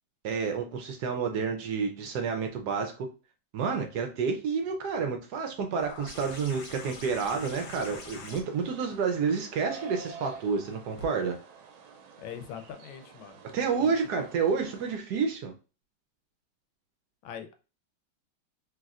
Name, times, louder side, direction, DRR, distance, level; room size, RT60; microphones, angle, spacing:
voice 1, 0.2-3.1 3.5-11.4 13.5-15.5, right 5 dB, 70° right, 5 dB, 1.0 m, -29 dB
sound 1, 5.8-11.1 12.4-12.5, left 4 dB, 70° left, 1.2 m, -45 dB
sound 2, 7.5-15.0, right 5 dB, 90° right, 1.4 m, -48 dB
voice 2, 12.2-13.4 13.8-13.9 17.2-17.6, left 8 dB, 85° left, 8 dB, 1.4 m, -42 dB
3.3 x 3.0 x 2.4 m, 0.33 s
omnidirectional pair, 2.2 m